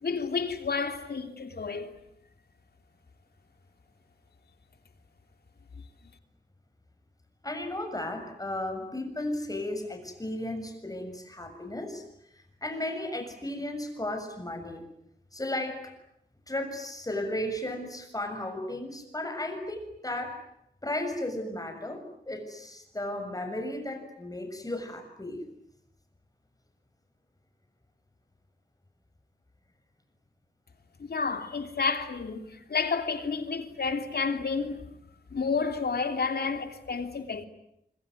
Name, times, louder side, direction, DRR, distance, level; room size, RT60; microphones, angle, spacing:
voice 1, 0.0-1.9 31.0-34.9 35.3-37.5, left 5 dB, 70° left, 3.1 m, -30 dB
voice 2, 7.4-12.0 12.6-14.8 15.3-15.9 16.5-20.4 20.8-25.4, left 1 dB, 20° left, 6.8 m, -34 dB
25.5 x 23.5 x 9.7 m
wide cardioid pair, 105°, 17 cm